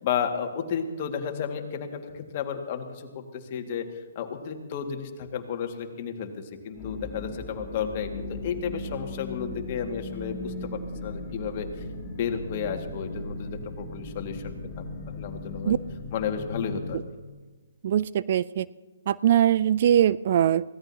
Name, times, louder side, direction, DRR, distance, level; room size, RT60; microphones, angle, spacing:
voice 1, 0.0-3.9 4.2-6.3 6.6-11.7 12.0-15.8 16.1-17.0, left 7 dB, 40° left, 4 dB, 2.0 m, -32 dB
sound 1, 6.7-17.0, left 2 dB, 20° left, 4.0 m, -38 dB
voice 2, 17.8-18.7 19.1-20.6, right 10 dB, 50° right, 18 dB, 0.4 m, -22 dB
24.0 x 17.0 x 2.9 m, 1.4 s
hypercardioid pair, 135°, 0 cm